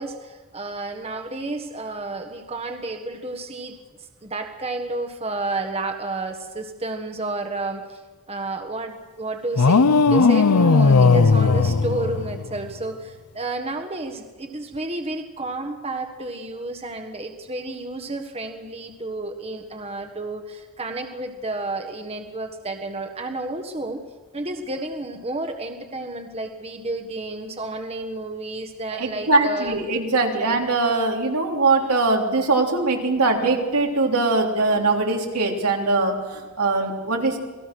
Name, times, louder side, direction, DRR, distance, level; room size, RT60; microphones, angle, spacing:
voice 1, 0.0-3.8 4.2-8.0 8.3-24.0 24.3-29.8, right 2 dB, 25° right, 5 dB, 1.4 m, -31 dB
sound 1, 9.6-12.7, left 4 dB, 90° left, 0.7 m, -17 dB
voice 2, 28.9-36.2 36.6-37.4, right 3 dB, 90° right, 1 dB, 3.6 m, -21 dB
28.0 x 19.5 x 6.2 m, 1.3 s
head